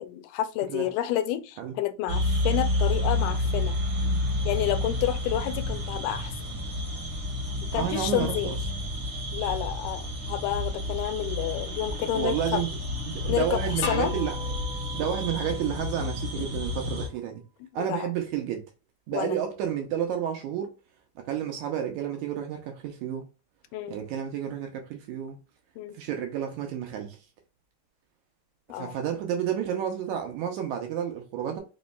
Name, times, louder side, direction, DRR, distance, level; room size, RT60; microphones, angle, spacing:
voice 1, 0.0-3.8 4.4-6.3 7.7-8.6 9.3-12.6 13.3-14.1 16.3-16.5 17.8-18.1 19.1-19.4 23.7-24.0 25.8-26.0 28.7-29.0, left 12 dB, 85° left, 2.0 m, -30 dB
sound 1, 2.1-17.1, left 1 dB, 60° right, 1.3 m, -30 dB
voice 2, 7.7-8.6 12.1-12.7 13.1-14.4 14.9-17.4 17.7-18.6 19.1-20.7 21.2-23.3 23.9-25.4 26.0-27.2 28.7-31.6, right 9 dB, 80° right, 1.9 m, -31 dB
sound 2, 13.8-16.7, left 3 dB, 60° left, 2.1 m, -39 dB
5.1 x 3.0 x 2.2 m
omnidirectional pair, 3.7 m